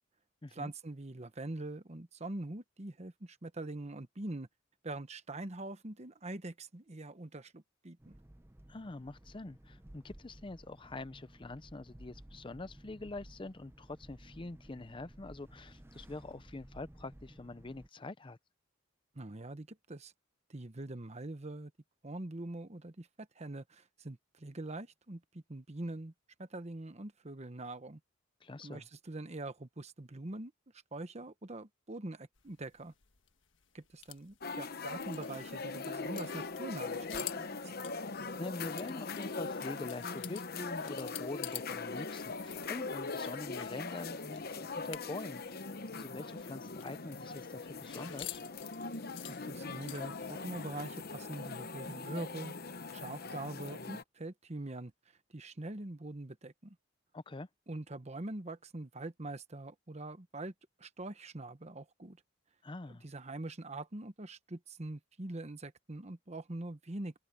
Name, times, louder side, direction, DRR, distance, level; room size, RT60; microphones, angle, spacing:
voice 1, 0.5-4.5 4.8-8.2 19.1-20.1 20.5-21.7 22.0-26.1 26.4-28.0 28.6-30.5 30.9-32.9 33.7-37.7 49.3-52.5 52.9-54.9 55.3-56.8 57.7-60.5 60.8-62.2 62.9-67.1, right 2 dB, 35° right, 1.1 m, -43 dB
sound 1, 8.0-17.9, right 1 dB, 10° right, 0.6 m, -56 dB
voice 2, 8.7-18.4 28.4-28.8 38.4-45.7 45.9-48.4 57.1-57.5 62.6-63.0, left 2 dB, 25° left, 0.6 m, -45 dB
sound 2, 32.4-41.8 42.0-45.4 45.6-45.7 46.0-50.3, left 12 dB, 70° left, 1.5 m, -48 dB
sound 3, 34.4-54.0, left 4 dB, 50° left, 1.0 m, -41 dB
open air
head